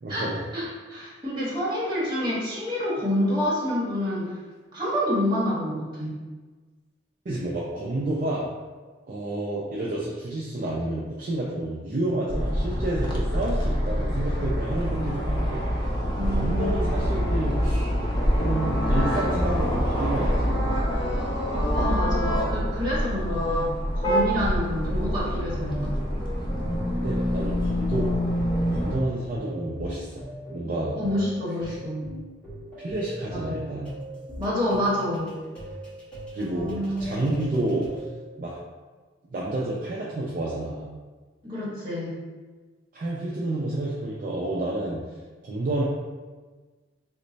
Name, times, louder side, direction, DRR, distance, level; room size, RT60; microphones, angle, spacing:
voice 1, 0.0-0.4 7.3-8.5 9.1-15.6 16.3-17.8 18.4-20.5 26.9-28.1 28.7-30.2 30.5-31.0 31.7-31.9 32.8-34.0 36.3-36.7 37.0-37.9 38.4-38.6 39.3-40.9 42.9-45.0 45.4-45.8, right 1 dB, 45° right, -5 dB, 0.4 m, -29 dB
voice 2, 0.5-4.3 4.7-6.2 16.1-17.3 21.7-25.9 30.9-32.1 33.3-33.7 34.4-35.3 36.4-37.0 41.4-42.2, left 1 dB, 25° right, -8 dB, 1.1 m, -28 dB
sound 1, 12.3-29.0, equal, 25° left, 0.4 m, -26 dB
sound 2, 16.8-23.7, left 1 dB, 70° left, 0.8 m, -32 dB
sound 3, 24.9-38.1, equal, 5° left, 1.3 m, -40 dB
3.0 x 2.1 x 3.9 m, 1.3 s
head